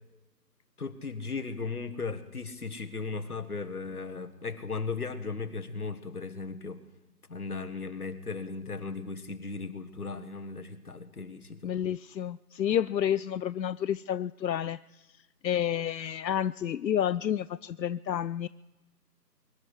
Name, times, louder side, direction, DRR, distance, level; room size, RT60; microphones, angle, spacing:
voice 1, 0.8-6.8 7.3-11.7, left 4 dB, 60° left, 9 dB, 1.5 m, -37 dB
voice 2, 11.6-14.8 15.4-18.5, left 9 dB, 85° left, 17 dB, 0.6 m, -30 dB
24.5 x 11.5 x 4.8 m, 1.0 s
figure-of-eight pair, 175°, 50 cm